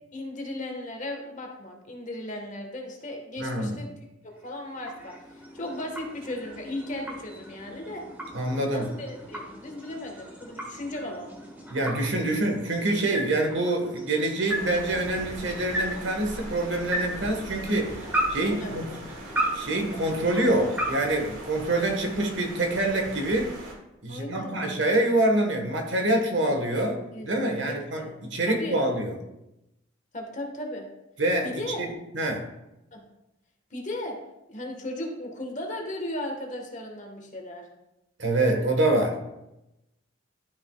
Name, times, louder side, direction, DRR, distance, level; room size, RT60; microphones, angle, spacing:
voice 1, 0.1-3.9 4.2-8.0 8.7-11.3 18.0-18.2 18.5-19.0 24.1-24.6 27.1-27.3 27.5-28.2 28.5-28.8 30.1-30.9 31.4-31.8 32.9-33.0 33.7-34.2 34.5-37.6, left 1 dB, 40° left, 2 dB, 1.4 m, -36 dB
voice 2, 3.4-3.8 8.3-8.9 11.7-18.0 18.3-18.9 19.5-23.6 24.0-29.2 31.2-32.5 38.2-39.2, right 1 dB, 65° right, 3 dB, 1.4 m, -26 dB
sound 1, 4.3-22.1, right 1 dB, 10° right, 1.2 m, -36 dB
sound 2, 14.5-23.7, right 1 dB, 90° right, 1.9 m, -41 dB
12.0 x 6.1 x 2.3 m, 0.90 s
head